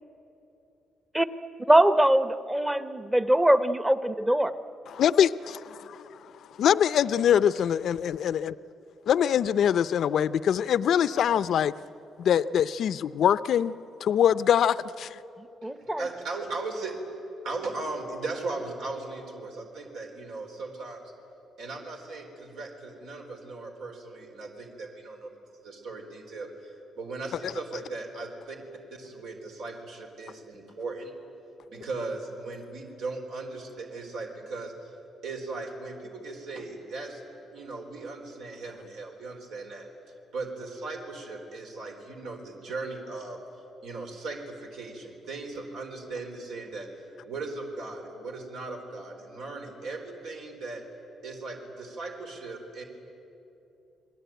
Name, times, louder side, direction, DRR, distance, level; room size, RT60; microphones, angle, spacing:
voice 1, 1.7-4.5 15.6-16.1, right 1 dB, 10° right, 12 dB, 0.9 m, -22 dB
voice 2, 4.9-6.0 6.6-8.5 9.1-11.7 12.2-13.7 14.0-15.2, left 9 dB, 60° left, 15 dB, 0.5 m, -23 dB
voice 3, 15.6-17.0 17.4-21.0 21.6-25.3 25.6-28.6 28.9-31.1 31.7-34.9 35.2-39.9 40.3-43.4 43.8-46.9 47.2-50.8 51.2-52.8, right 3 dB, 85° right, 2 dB, 4.0 m, -38 dB
30.0 x 21.0 x 9.3 m, 2.9 s
cardioid pair, 145°, 0 cm